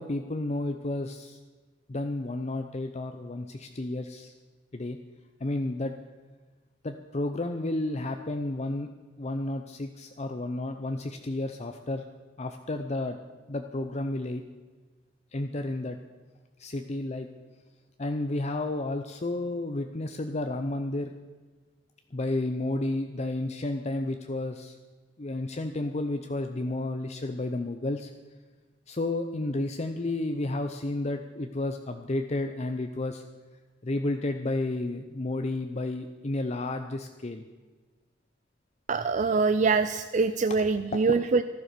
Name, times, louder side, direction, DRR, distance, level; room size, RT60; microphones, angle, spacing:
voice 1, 0.0-1.4 1.9-4.3 4.7-5.0 5.4-5.9 6.8-8.9 9.2-12.0 12.4-13.2 13.5-14.4 15.3-16.0 16.6-17.3 18.0-21.1 22.1-24.8 25.2-28.1 28.9-33.2 33.8-37.4 41.0-41.2, left 2 dB, 35° left, 6 dB, 0.6 m, -31 dB
voice 2, 38.9-41.4, right 4 dB, 40° right, 11 dB, 0.4 m, -24 dB
14.0 x 12.0 x 6.8 m, 1.3 s
head